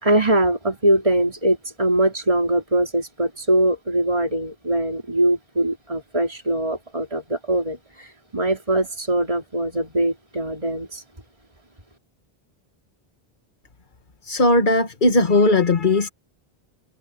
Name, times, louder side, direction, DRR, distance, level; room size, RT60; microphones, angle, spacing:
voice 1, 0.0-11.0, right 1 dB, 35° right, 4.1 m, -22 dB
voice 2, 14.2-16.1, left 2 dB, 50° left, 1.6 m, -18 dB
omnidirectional pair, 1.0 m